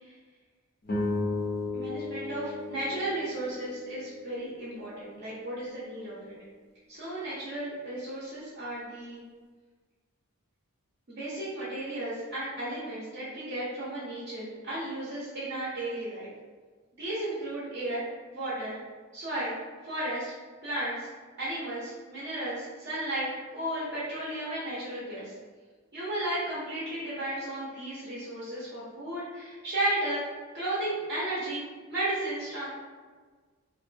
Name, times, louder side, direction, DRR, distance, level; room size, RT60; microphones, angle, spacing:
sound 1, 0.8-5.4, left 2 dB, 40° left, 0.4 m, -35 dB
voice 1, 1.7-6.3 6.9-9.2 11.1-16.3 17.0-18.0 18.3-18.7 19.1-19.6 19.8-20.3 20.6-21.1 21.4-25.3 25.9-30.2 30.5-31.6 31.9-32.7, right 1 dB, 50° right, -9 dB, 0.6 m, -34 dB
2.5 x 2.2 x 2.4 m, 1.5 s
head